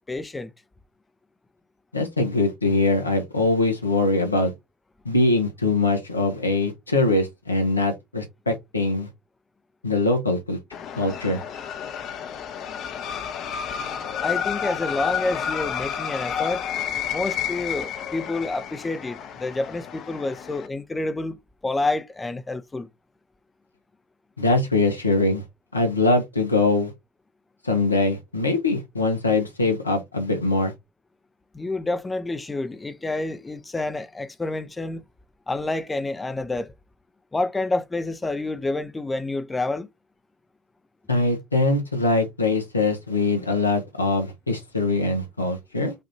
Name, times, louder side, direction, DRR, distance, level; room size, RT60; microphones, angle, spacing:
voice 1, 0.1-0.5 14.2-16.6 17.1-22.9 31.5-35.0 35.5-36.7 37.3-39.9, left 2 dB, 20° left, 0.6 m, -28 dB
voice 2, 1.9-4.5 5.0-9.1 9.8-10.6 10.9-11.4 24.4-25.4 25.7-26.9 27.6-30.7 41.1-45.9, left 2 dB, 90° left, 0.9 m, -22 dB
sound 1, 10.7-20.7, left 8 dB, 50° left, 0.8 m, -31 dB
5.2 x 2.5 x 2.7 m
figure-of-eight pair, 55°, 0 cm